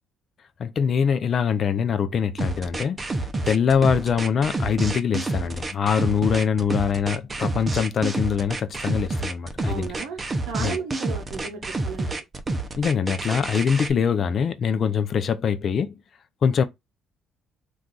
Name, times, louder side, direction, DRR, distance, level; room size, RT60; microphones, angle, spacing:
voice 1, 0.6-3.0 3.5-9.9 10.6-10.8 12.8-15.9 16.4-16.6, left 7 dB, 50° left, 0.4 m, -23 dB
sound 1, 2.4-13.9, right 2 dB, 30° right, 0.5 m, -29 dB
voice 2, 9.7-10.2 10.5-12.2, right 5 dB, 85° right, 0.7 m, -34 dB
2.4 x 2.3 x 3.8 m
supercardioid pair, 75°, 0 cm